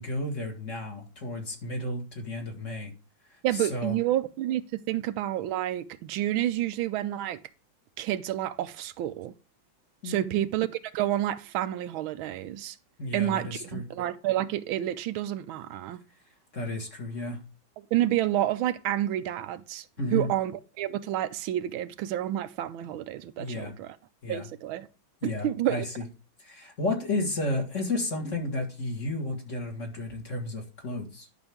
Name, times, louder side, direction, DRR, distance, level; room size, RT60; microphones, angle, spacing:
voice 1, 0.0-2.9 3.3-4.0 10.0-10.4 13.0-13.8 16.5-17.4 20.0-20.3 23.4-23.7 24.2-24.5 25.2-26.0 26.4-31.3, left 2 dB, 40° left, 1.9 m, -32 dB
voice 2, 3.4-7.4 8.0-9.3 10.0-10.7 10.9-12.8 13.1-16.0 17.8-19.8 20.1-24.0 24.3-24.9 25.2-25.8, right 13 dB, 85° right, 1.4 m, -29 dB
11.0 x 6.0 x 3.5 m
omnidirectional pair, 2.2 m